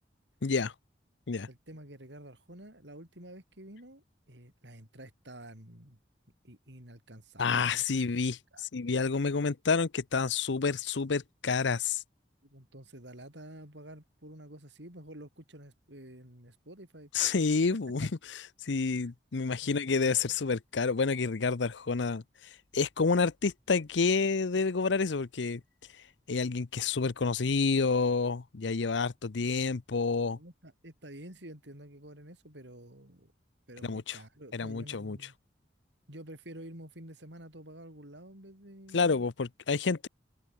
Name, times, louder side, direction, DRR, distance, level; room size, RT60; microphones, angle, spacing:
voice 1, 0.4-0.7 1.3-1.5 7.4-12.0 17.1-22.2 22.7-25.6 26.3-30.4 33.8-34.2 34.5-35.2 38.9-40.1, left 4 dB, 80° left, 0.7 m, -29 dB
voice 2, 1.5-6.0 6.4-7.8 8.5-8.7 12.4-17.1 19.6-20.4 30.1-33.3 33.7-35.4 36.1-39.3, right 1 dB, 75° right, 6.9 m, -49 dB
open air
head